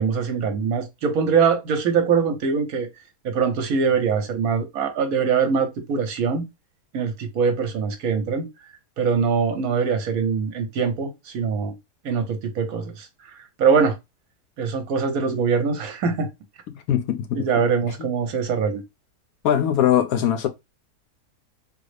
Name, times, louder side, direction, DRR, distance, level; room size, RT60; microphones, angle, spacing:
voice 1, 0.0-2.9 3.2-6.5 6.9-8.5 9.0-11.7 12.0-14.0 14.6-16.3 17.3-18.8, right 6 dB, 70° right, 1.1 m, -23 dB
voice 2, 16.9-17.5 19.4-20.5, left 10 dB, 70° left, 1.0 m, -21 dB
3.8 x 2.0 x 3.1 m
omnidirectional pair, 1.7 m